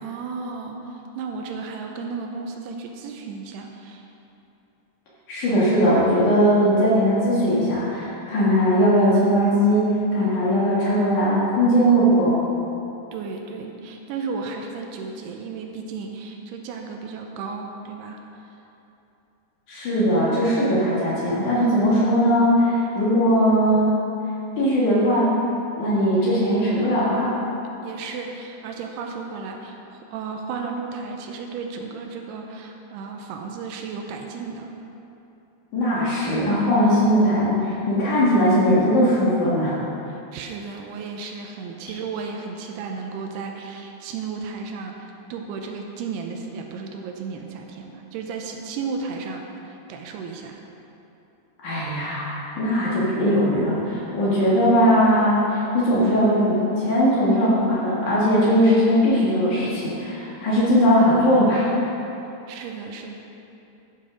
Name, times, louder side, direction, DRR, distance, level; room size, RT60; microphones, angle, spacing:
voice 1, 0.0-4.1 13.1-18.2 27.8-34.7 40.1-50.6 62.5-63.2, right 5 dB, 80° right, 2 dB, 2.7 m, -34 dB
voice 2, 5.3-12.4 19.7-23.9 24.6-25.3 25.8-27.3 35.7-39.8 51.6-61.7, equal, 55° left, -7 dB, 2.8 m, -19 dB
11.5 x 5.8 x 5.0 m, 2.9 s
omnidirectional pair, 4.8 m